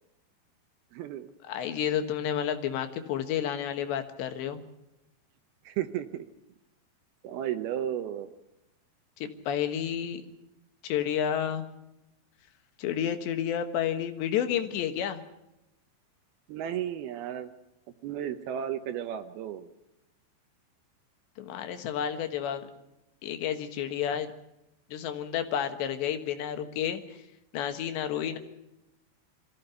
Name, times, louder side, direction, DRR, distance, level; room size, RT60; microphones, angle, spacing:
voice 1, 0.9-1.3 5.7-6.3 7.2-8.3 16.5-17.5 18.0-19.7, right 10 dB, 75° right, 9 dB, 2.5 m, -33 dB
voice 2, 1.5-4.6 9.2-10.2 10.8-11.7 12.8-15.2 21.4-22.7 23.2-24.3 24.9-27.2 27.5-28.4, left 9 dB, 80° left, 8 dB, 3.6 m, -30 dB
23.5 x 15.0 x 8.1 m, 0.92 s
omnidirectional pair, 5.1 m